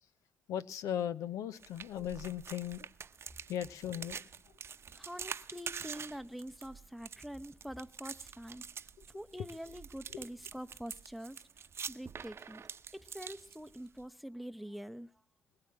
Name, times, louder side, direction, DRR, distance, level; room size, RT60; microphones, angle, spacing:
voice 1, 0.5-2.9 3.5-4.2, left 10 dB, 70° left, 0.8 m, -37 dB
sound 1, 1.6-14.0, right 6 dB, 45° right, 0.8 m, -46 dB
voice 2, 4.9-8.6 9.1-12.7 12.9-15.1, equal, ahead, 0.9 m, -45 dB
21.5 x 8.8 x 7.5 m
hypercardioid pair, 40°, 6 cm